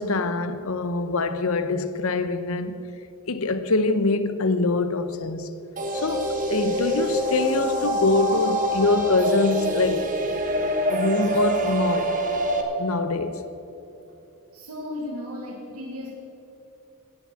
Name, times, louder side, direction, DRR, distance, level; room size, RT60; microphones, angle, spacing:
voice 1, 0.0-2.8 3.3-5.5 5.9-10.1 10.6-12.2 12.8-13.5, left 3 dB, 70° left, 0.8 m, -24 dB
sound 1, 5.8-12.6, equal, 35° right, 1.4 m, -25 dB
voice 2, 14.5-16.1, left 1 dB, 85° right, 1.8 m, -35 dB
16.5 x 7.4 x 7.6 m
head